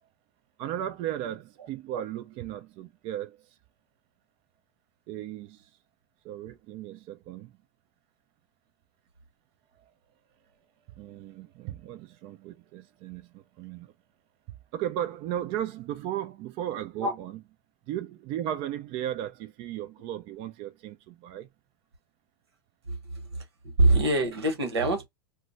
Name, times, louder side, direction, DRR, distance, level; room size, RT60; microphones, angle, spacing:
voice 1, 0.6-3.6 5.1-5.7 6.2-7.5 9.8-9.9 10.9-13.9 14.7-17.3 17.9-21.5, right 11 dB, 45° right, 0.4 m, -36 dB
voice 2, 22.9-25.1, right 2 dB, 90° right, 1.0 m, -25 dB
2.2 x 2.2 x 3.8 m
hypercardioid pair, 100°, 13 cm